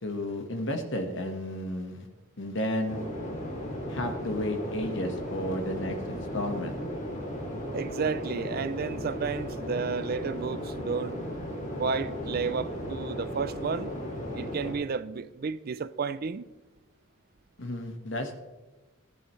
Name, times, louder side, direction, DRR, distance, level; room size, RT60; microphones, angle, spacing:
voice 1, 0.0-2.1 2.4-3.0 3.9-6.8 17.6-18.4, left 1 dB, 60° left, 1.4 m, -32 dB
sound 1, 2.9-14.7, equal, 35° left, 2.5 m, -36 dB
voice 2, 7.7-11.2 11.8-13.9 14.3-16.5, right 5 dB, 45° right, 0.4 m, -32 dB
15.5 x 10.5 x 3.2 m
head